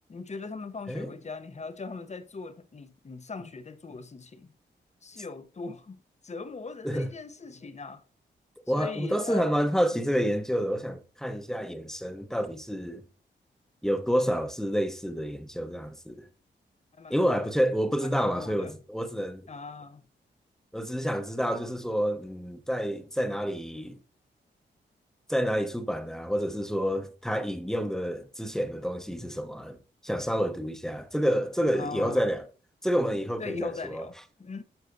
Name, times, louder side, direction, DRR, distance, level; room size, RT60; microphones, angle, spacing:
voice 1, 0.1-4.5 5.0-8.0 8.7-9.6 16.9-17.6 18.0-18.7 19.5-20.0 31.7-32.2 33.4-34.6, left 4 dB, 35° left, 0.7 m, -40 dB
voice 2, 8.7-13.0 13.8-16.2 17.1-19.4 20.7-24.0 25.3-29.8 30.0-32.4 32.8-34.0, equal, ahead, 0.8 m, -29 dB
7.9 x 5.5 x 2.5 m
cardioid pair, 50°, 20 cm